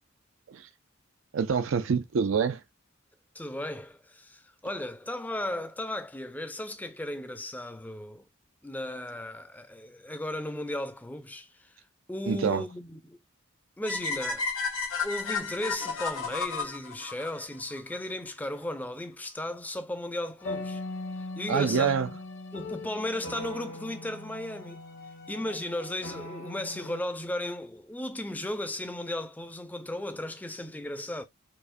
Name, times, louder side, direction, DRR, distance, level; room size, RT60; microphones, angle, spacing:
voice 1, 1.3-2.6 12.3-12.6 21.5-22.1, right 6 dB, 70° right, 0.4 m, -26 dB
voice 2, 3.3-8.2 8.6-11.7 12.1-13.2 13.8-14.5 15.0-20.8 21.4-22.2 22.5-24.8 25.3-31.2, left 1 dB, 10° left, 0.5 m, -35 dB
sound 1, 13.8-18.0, left 4 dB, 85° left, 0.9 m, -32 dB
sound 2, 20.4-27.0, left 2 dB, 60° left, 0.9 m, -40 dB
4.7 x 2.1 x 2.5 m
head